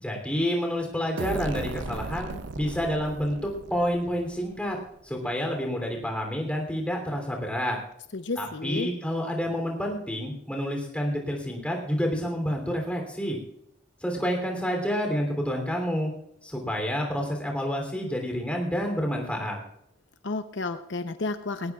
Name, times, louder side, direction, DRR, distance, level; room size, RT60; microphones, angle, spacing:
voice 1, 0.0-4.8 5.0-7.8 8.4-13.4 14.0-16.1 16.4-19.6, equal, 5° left, 1 dB, 3.1 m, -29 dB
sound 1, 1.2-4.8, right 3 dB, 80° right, 0.7 m, -37 dB
voice 2, 8.1-8.9 20.2-21.7, left 3 dB, 75° left, 9 dB, 0.8 m, -31 dB
19.5 x 18.0 x 2.4 m, 0.77 s
head